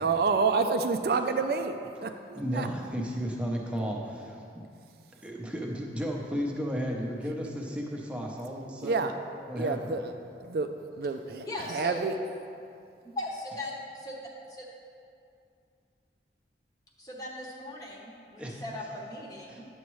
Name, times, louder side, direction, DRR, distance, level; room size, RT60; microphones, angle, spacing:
voice 1, 0.0-2.7 8.8-9.1 9.5-10.1 10.4-10.7 11.0-12.1, right 4 dB, 55° right, 7 dB, 0.3 m, -28 dB
voice 2, 2.3-4.6 5.2-9.0 9.5-9.9 18.4-18.6 19.5-19.6, equal, 5° right, -1 dB, 0.7 m, -34 dB
voice 3, 11.4-12.0 13.2-14.2 14.5-14.7 17.0-19.7, left 1 dB, 20° left, -3 dB, 0.9 m, -38 dB
9.6 x 7.0 x 3.1 m, 2.4 s
head